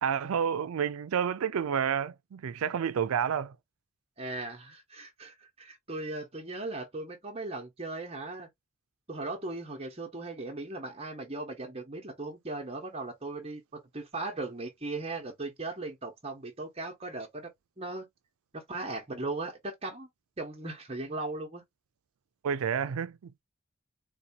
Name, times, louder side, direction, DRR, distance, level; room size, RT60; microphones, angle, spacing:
voice 1, 0.0-3.6 22.4-23.3, right 7 dB, 90° right, 0.4 m, -30 dB
voice 2, 4.2-8.5 9.1-17.5 17.8-18.1 18.5-20.1 20.4-21.6, right 2 dB, 30° right, 0.9 m, -38 dB
4.1 x 2.2 x 2.7 m
head